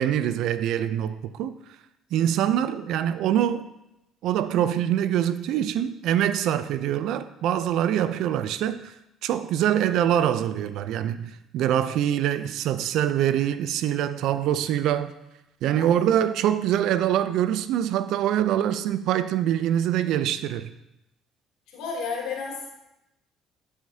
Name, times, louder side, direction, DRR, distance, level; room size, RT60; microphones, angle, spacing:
voice 1, 0.0-1.5 2.1-3.6 4.2-8.9 9.2-15.1 15.6-20.7, right 10 dB, 70° right, 0.4 m, -24 dB
voice 2, 15.7-16.3 21.7-22.7, left 5 dB, 75° left, 2.8 m, -34 dB
12.0 x 4.9 x 2.8 m
hypercardioid pair, 65°, 0 cm